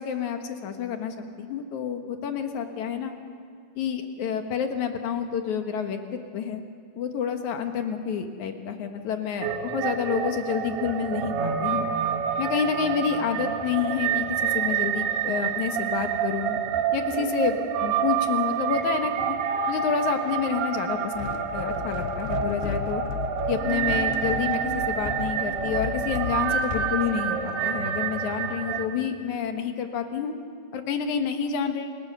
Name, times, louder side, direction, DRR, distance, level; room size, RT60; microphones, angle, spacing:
voice 1, 0.0-3.1 3.8-6.6 7.0-11.9 12.4-14.3 14.5-16.6 16.9-19.3 19.7-23.0 23.5-30.3 30.7-32.0, left 7 dB, 60° left, 6 dB, 2.4 m, -29 dB
sound 1, 9.4-28.9, right 8 dB, 85° right, 3.3 m, -28 dB
sound 2, 21.1-27.0, left 9 dB, 80° left, 2.4 m, -35 dB
28.5 x 18.5 x 6.8 m, 2.3 s
omnidirectional pair, 4.5 m